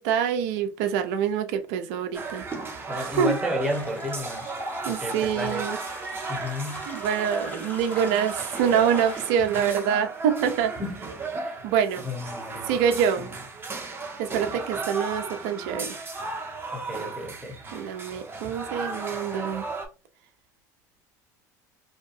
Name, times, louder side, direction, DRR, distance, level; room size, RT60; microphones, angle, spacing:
voice 1, 0.0-2.4 3.0-3.3 4.8-5.8 6.9-10.7 11.6-12.0 12.6-13.3 14.2-15.9 17.7-19.6, right 8 dB, 70° right, 0.4 m, -25 dB
sound 1, 2.1-19.9, right 3 dB, 25° right, 0.7 m, -35 dB
voice 2, 2.9-4.5 4.9-5.8 6.3-6.9 10.8-11.0 11.3-11.6 12.0-12.8 16.7-17.6, left 1 dB, 5° right, 1.1 m, -32 dB
sound 2, 3.6-9.5, left 1 dB, 20° left, 0.9 m, -40 dB
2.6 x 2.2 x 2.6 m
hypercardioid pair, 80°, 9 cm